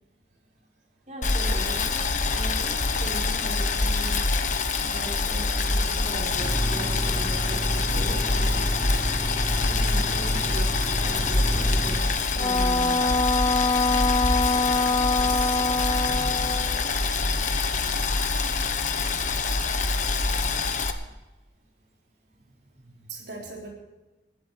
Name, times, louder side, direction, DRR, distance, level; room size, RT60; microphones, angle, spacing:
voice 1, 1.1-4.2 4.8-8.7 9.7-10.7 10.9-13.3, right 2 dB, 40° right, -1 dB, 4.2 m, -39 dB
Boiling, 1.2-20.9, left 3 dB, 45° left, 1.2 m, -25 dB
Engine, 6.3-12.1, equal, 15° right, 1.1 m, -32 dB
Wind instrument woodwind instrument, 12.4-16.9, left 3 dB, 25° left, 0.5 m, -24 dB
voice 2, 15.1-16.2 22.8-23.7, right 3 dB, 75° right, -1 dB, 3.8 m, -42 dB
20.0 x 12.0 x 4.8 m, 1.1 s
head